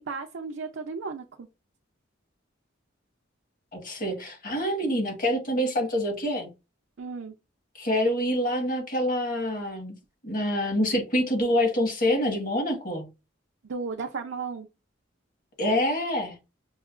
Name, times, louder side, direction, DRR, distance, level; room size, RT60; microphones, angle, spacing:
voice 1, 0.1-1.5 7.0-7.3 13.6-14.7, right 4 dB, 70° right, 0.5 m, -34 dB
voice 2, 3.7-6.5 7.7-10.0 10.2-13.1 15.6-16.4, left 1 dB, 45° left, 1.4 m, -26 dB
6.2 x 2.2 x 2.4 m
head